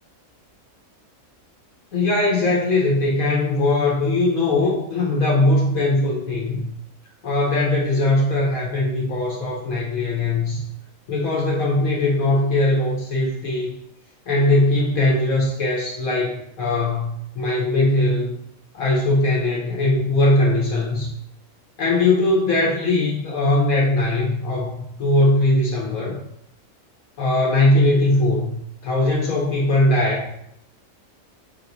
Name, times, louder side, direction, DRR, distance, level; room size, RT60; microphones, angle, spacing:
voice 1, 1.9-6.7 7.2-10.6 11.1-13.7 14.3-18.4 18.7-21.1 21.8-26.2 27.2-28.5 28.8-30.3, left 2 dB, 75° left, -3 dB, 1.3 m, -20 dB
3.5 x 3.0 x 3.9 m, 0.74 s
omnidirectional pair, 1.5 m